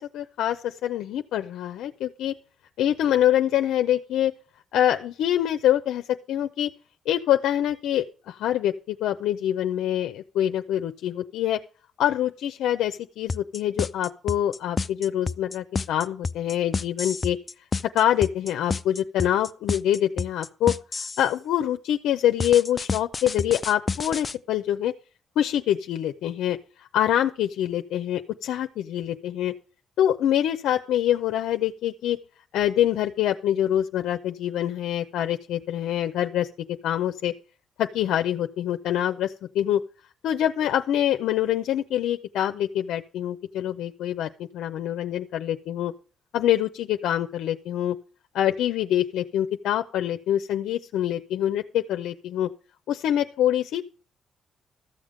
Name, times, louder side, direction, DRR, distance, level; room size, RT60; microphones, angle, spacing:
voice 1, 0.0-2.3 2.8-4.3 4.7-6.7 7.1-11.6 12.0-17.4 17.9-24.9 25.4-26.6 26.9-29.5 30.0-32.2 32.5-36.5 36.8-37.3 37.8-39.8 40.2-45.9 46.3-48.0 48.3-52.5 52.9-53.8, left 11 dB, 85° left, 7 dB, 0.6 m, -25 dB
sound 1, 13.3-21.3 22.4-24.3, left 4 dB, 30° left, 0.4 m, -29 dB
14.0 x 7.3 x 5.1 m, 0.38 s
cardioid pair, 90°, 0 cm